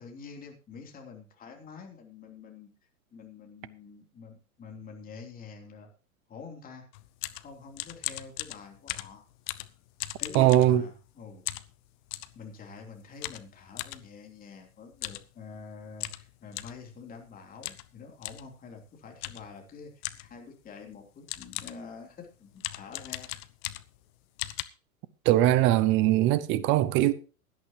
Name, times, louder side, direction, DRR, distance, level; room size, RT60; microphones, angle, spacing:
voice 1, 0.0-2.7 3.1-5.9 6.3-6.8 7.3-9.2 9.6-9.7 10.2-11.4 12.3-23.3, left 5 dB, 20° left, 3.2 m, -47 dB
sound 1, 6.9-11.1 11.5-12.4 13.2-14.0 14.9-15.3 15.6-15.7 16.0-16.8 17.6-17.9 18.2-18.5 19.2-19.5 20.0-20.4 20.9-21.0 21.3-21.9 22.6-24.0 24.4-24.6, left 18 dB, 35° left, 0.8 m, -38 dB
voice 2, 10.3-10.8 25.2-27.1, right 13 dB, 25° right, 0.8 m, -21 dB
17.0 x 11.0 x 3.0 m
figure-of-eight pair, 110°, 43 cm